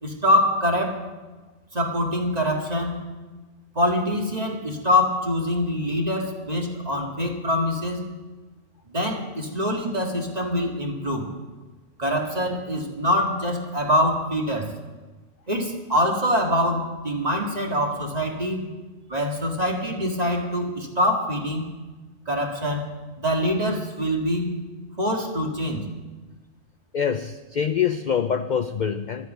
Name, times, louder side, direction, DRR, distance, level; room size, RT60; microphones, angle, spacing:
voice 1, 0.0-1.0 1.7-3.0 3.7-8.0 8.9-11.3 12.0-14.7 15.5-18.7 19.1-21.7 22.3-22.9 23.2-24.5 25.0-25.8, left 1 dB, 30° right, 1 dB, 2.0 m, -24 dB
voice 2, 26.9-29.3, left 7 dB, 60° left, 10 dB, 0.4 m, -25 dB
12.5 x 9.6 x 9.1 m, 1.2 s
omnidirectional pair, 1.4 m